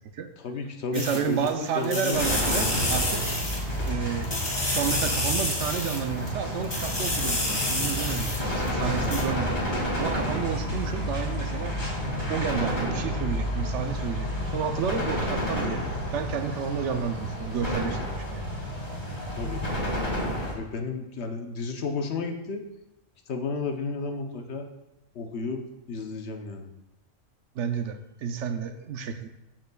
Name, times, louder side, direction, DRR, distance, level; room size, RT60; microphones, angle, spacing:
voice 1, 0.4-2.2 19.4-19.8 20.5-22.6 23.3-24.7 25.1-25.6 25.9-26.7, left 4 dB, 60° left, 5 dB, 1.0 m, -32 dB
sound 1, 0.9-1.5 1.8-3.9 4.2-6.3 6.6-8.7 9.0-9.2, left 1 dB, 20° left, 1.1 m, -29 dB
voice 2, 0.9-3.2 3.9-4.3 4.7-11.8 12.3-15.8 16.1-18.4 27.6-29.3, right 7 dB, 70° right, 8 dB, 0.9 m, -31 dB
sound 2, 2.1-20.5, equal, 35° left, 2.2 m, -30 dB
13.0 x 5.3 x 2.3 m, 0.95 s
omnidirectional pair, 1.3 m